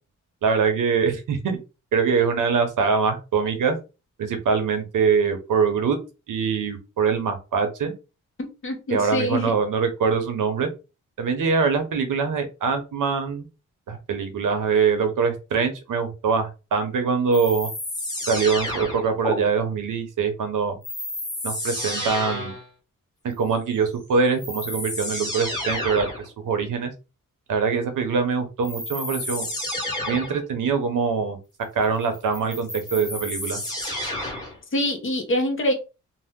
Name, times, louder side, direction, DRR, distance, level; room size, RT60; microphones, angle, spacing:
voice 1, 0.4-1.6 1.9-3.8 4.2-6.0 6.3-7.9 8.9-10.7 11.2-13.5 13.9-17.7 18.3-20.8 21.4-22.6 23.2-26.1 26.4-26.9 27.5-29.5 30.1-31.4 31.7-33.6, right 5 dB, 80° right, 7 dB, 0.9 m, -23 dB
voice 2, 8.4-9.5 34.7-35.7, left 1 dB, 40° left, 3 dB, 0.9 m, -25 dB
sound 1, 17.3-19.4 20.8-22.7 23.9-24.0 24.4-26.3 28.6-30.4 32.1-34.6, left 1 dB, 10° left, 1.3 m, -30 dB
2.7 x 2.0 x 3.5 m, 0.29 s
cardioid pair, 100°, 31 cm